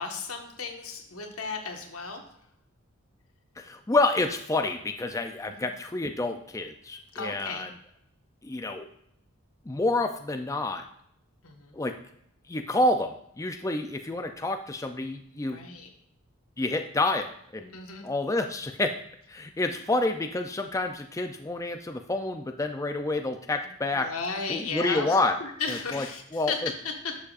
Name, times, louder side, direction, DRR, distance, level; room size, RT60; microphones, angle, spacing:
voice 1, 0.0-2.2 5.4-5.7 7.1-7.6 11.4-11.8 15.5-15.9 17.7-18.1 23.9-26.6 26.8-27.1, left 4 dB, 90° left, 2 dB, 1.6 m, -35 dB
voice 2, 3.6-7.7 8.4-8.9 9.7-10.9 11.7-12.0 12.5-15.6 16.6-17.8 18.0-18.9 19.3-24.1 24.5-25.4 25.7-26.0 26.3-26.7, left 2 dB, 15° left, 5 dB, 0.4 m, -28 dB
11.5 x 7.2 x 2.5 m, 0.73 s
head